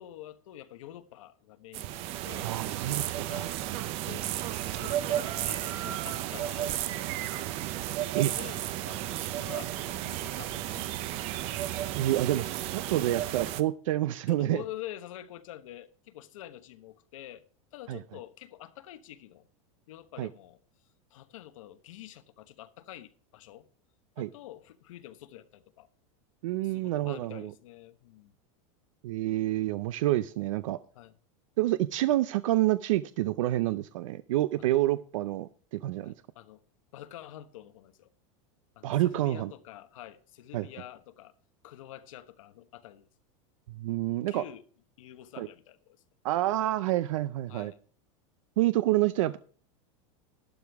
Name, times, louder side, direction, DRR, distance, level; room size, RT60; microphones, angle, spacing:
voice 1, 0.0-2.6 3.3-3.6 4.1-4.3 4.7-7.1 8.1-11.1 12.0-12.7 13.1-13.3 14.3-17.4 17.7-19.5 19.9-20.6 21.1-23.7 24.2-25.9 26.6-28.4 30.9-31.2 36.0-36.6 36.9-38.1 38.7-41.3 41.6-43.1 44.3-44.7 45.0-46.0 47.5-47.8, left 13 dB, 85° left, 1.1 m, -47 dB
sound 1, 1.7-13.6, right 13 dB, 40° right, 0.6 m, -33 dB
voice 2, 2.4-3.0 3.3-3.5 8.1-8.3 12.0-12.5 12.7-14.6 17.9-18.0 20.2-20.3 24.2-24.3 26.4-27.5 29.0-30.8 31.6-36.1 38.8-39.5 40.5-40.7 43.7-44.4 45.4-45.5 46.2-47.7 48.6-49.4, right 15 dB, 85° right, 0.5 m, -28 dB
12.0 x 11.0 x 3.5 m
supercardioid pair, 165°, 17 cm